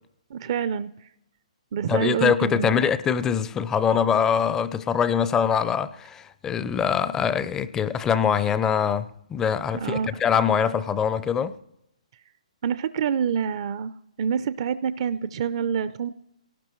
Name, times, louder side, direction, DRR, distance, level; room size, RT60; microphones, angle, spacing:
voice 1, 0.3-0.9 1.7-2.8 9.7-10.1 12.6-13.9 14.2-16.1, right 7 dB, 45° right, 0.5 m, -26 dB
voice 2, 1.9-11.5, left 7 dB, 10° left, 0.5 m, -23 dB
24.0 x 18.0 x 3.1 m
hypercardioid pair, 150°, 4 cm